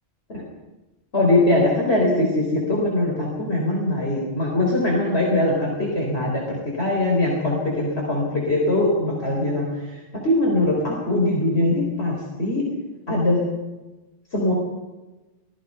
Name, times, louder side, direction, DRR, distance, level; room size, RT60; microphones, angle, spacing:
voice 1, 1.1-9.7 10.1-12.7 13.1-13.5 14.3-14.5, left 1 dB, 60° left, -2 dB, 4.4 m, -21 dB
25.0 x 18.5 x 5.6 m, 1.1 s
omnidirectional pair, 1.2 m